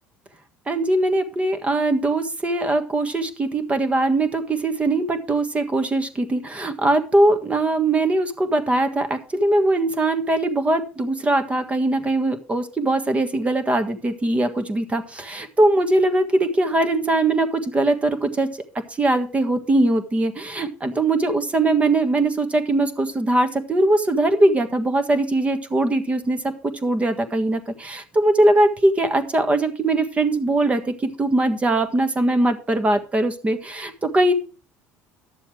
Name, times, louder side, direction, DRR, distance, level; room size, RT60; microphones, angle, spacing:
voice 1, 0.7-18.5 19.0-34.3, right 2 dB, 20° right, 8 dB, 1.6 m, -21 dB
11.0 x 7.1 x 4.9 m, 0.36 s
supercardioid pair, 100°, 6 cm